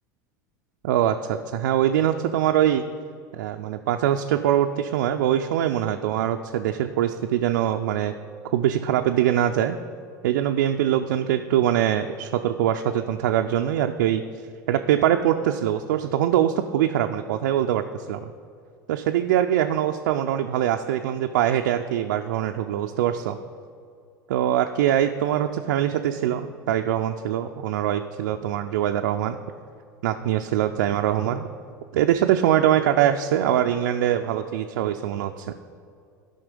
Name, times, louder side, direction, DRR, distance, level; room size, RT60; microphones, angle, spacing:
voice 1, 0.8-2.8 3.3-8.1 8.5-9.8 10.2-14.2 14.7-18.3 18.9-23.4 24.3-29.4 30.0-31.5 31.9-35.5, right 11 dB, 75° right, 5 dB, 0.4 m, -23 dB
13.0 x 5.5 x 5.2 m, 2.4 s
hypercardioid pair, 90°, 10 cm